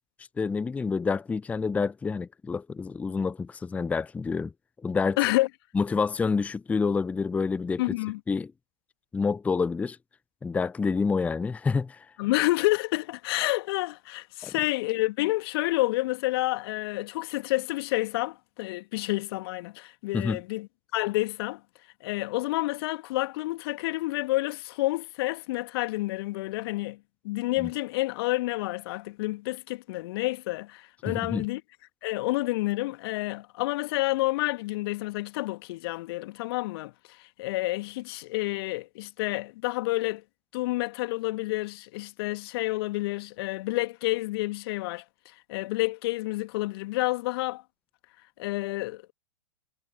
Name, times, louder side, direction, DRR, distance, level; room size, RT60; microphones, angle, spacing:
voice 1, 0.4-4.5 4.8-5.2 5.7-7.8 8.3-8.5 9.1-10.0 10.4-12.1 14.4-14.5 20.1-20.4 27.6-27.7 31.1-31.5, left 5 dB, 10° left, 0.6 m, -28 dB
voice 2, 5.2-5.5 7.8-8.2 12.2-21.6 22.0-31.6 32.0-40.2 40.5-47.6 48.4-49.1, left 20 dB, 45° left, 1.8 m, -29 dB
figure-of-eight pair, 100°, 17 cm